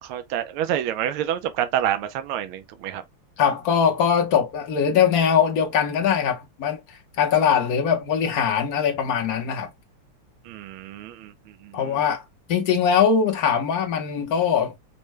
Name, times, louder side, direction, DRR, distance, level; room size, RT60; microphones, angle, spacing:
voice 1, 0.0-3.0 10.4-12.0, right 10 dB, 80° right, 1.5 m, -28 dB
voice 2, 3.4-9.7 11.7-12.2 12.5-14.7, left 7 dB, 55° left, 1.1 m, -21 dB
5.3 x 2.2 x 3.1 m
omnidirectional pair, 2.4 m